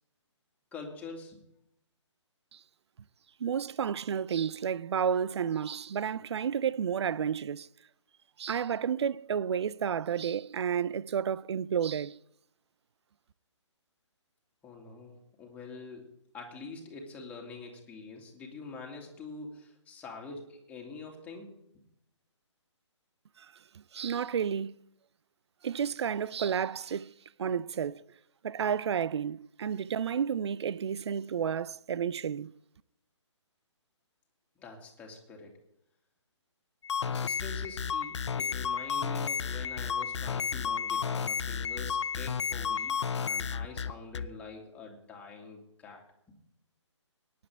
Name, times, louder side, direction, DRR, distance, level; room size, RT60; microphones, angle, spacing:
voice 1, 0.7-1.4 14.6-16.1 16.3-21.8 34.6-35.6 37.0-46.0, left 3 dB, 10° left, 2.4 m, -45 dB
voice 2, 3.4-7.7 8.4-12.2 23.4-23.5 23.9-24.8 25.6-27.1 27.4-28.0 28.4-32.5, right 8 dB, 60° right, 0.5 m, -31 dB
sound 1, 36.8-44.3, left 6 dB, 65° left, 0.7 m, -32 dB
18.5 x 10.5 x 3.5 m
hypercardioid pair, 150°, 16 cm